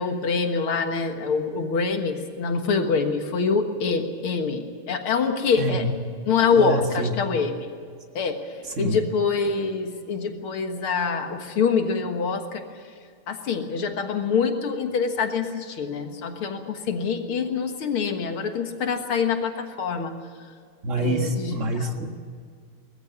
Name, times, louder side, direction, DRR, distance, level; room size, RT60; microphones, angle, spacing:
voice 1, 0.0-5.8 6.3-7.7 8.2-8.4 8.8-12.6 13.3-20.1 21.0-21.5 22.0-22.1, left 5 dB, 75° left, 5 dB, 2.4 m, -25 dB
voice 2, 5.6-5.9 6.5-7.1 8.6-9.0 20.8-22.1, right 1 dB, 35° right, 4 dB, 1.9 m, -26 dB
20.0 x 14.5 x 9.7 m, 2.1 s
omnidirectional pair, 2.4 m